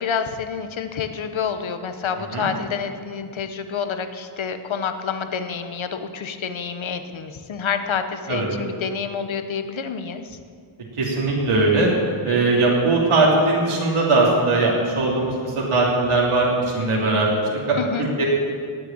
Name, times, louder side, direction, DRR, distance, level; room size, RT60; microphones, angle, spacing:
voice 1, 0.0-10.4 17.8-18.1, left 6 dB, 65° left, 9 dB, 1.1 m, -28 dB
voice 2, 11.0-11.9 12.2-15.3 15.7-16.5 16.7-17.3 17.7-18.2, right 2 dB, 85° right, -4 dB, 3.1 m, -19 dB
19.0 x 6.7 x 8.8 m, 2.2 s
wide cardioid pair, 170°, 50 cm